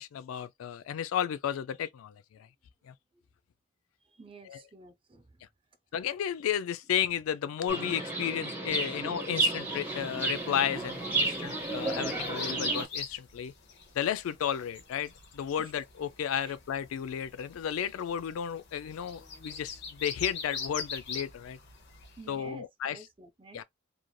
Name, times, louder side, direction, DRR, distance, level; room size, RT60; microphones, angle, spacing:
voice 1, 0.0-2.5 2.8-2.9 4.4-4.6 5.9-13.5 14.0-21.6 22.3-23.1 23.5-23.6, left 9 dB, 85° left, 0.3 m, -33 dB
voice 2, 4.2-5.2 15.6-15.7 16.4-16.5 22.2-23.6, right 3 dB, 25° right, 0.5 m, -50 dB
Chirp tweet, 7.7-12.8, right 2 dB, 10° right, 0.9 m, -32 dB
sound 1, 9.9-22.3, left 5 dB, 60° left, 0.8 m, -43 dB
3.1 x 2.5 x 2.2 m
head